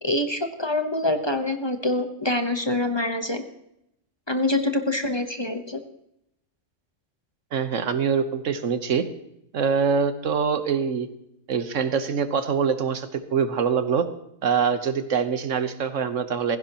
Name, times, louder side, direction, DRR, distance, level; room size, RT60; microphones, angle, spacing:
voice 1, 0.0-3.4 4.3-5.8, left 2 dB, 25° left, 6 dB, 1.0 m, -25 dB
voice 2, 7.5-9.1 9.5-11.1 11.5-14.1 14.4-16.6, right 6 dB, 90° right, 10 dB, 1.4 m, -24 dB
16.0 x 16.0 x 3.0 m, 0.78 s
omnidirectional pair, 1.3 m